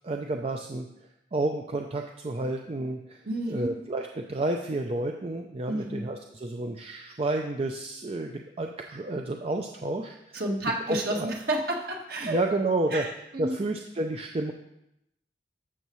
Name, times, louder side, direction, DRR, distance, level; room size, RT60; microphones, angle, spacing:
voice 1, 0.0-0.9 1.3-3.2 3.5-10.4 10.9-11.3 12.2-13.1 13.4-14.5, right 2 dB, 35° right, 3 dB, 0.5 m, -30 dB
voice 2, 3.2-3.8 5.7-6.1 10.3-12.4 12.9-13.6, right 1 dB, 55° right, 0 dB, 1.5 m, -31 dB
12.0 x 7.1 x 3.1 m, 0.84 s
head